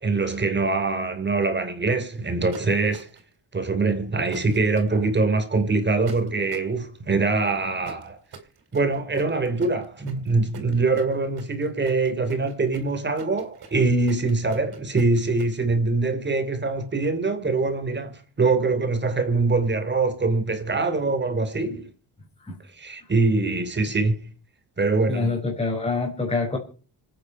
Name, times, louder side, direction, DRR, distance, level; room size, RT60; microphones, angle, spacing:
voice 1, 0.0-3.1 3.5-8.2 8.7-21.9 22.7-24.2 24.8-25.4, right 3 dB, 25° right, 3.1 m, -23 dB
sound 1, 2.5-3.3 4.3-4.9 6.1-6.7 7.8-15.5, right 5 dB, 65° right, 3.7 m, -42 dB
voice 2, 25.1-26.6, left 4 dB, 15° left, 5.0 m, -26 dB
26.0 x 9.3 x 5.5 m
cardioid pair, 125°, 41 cm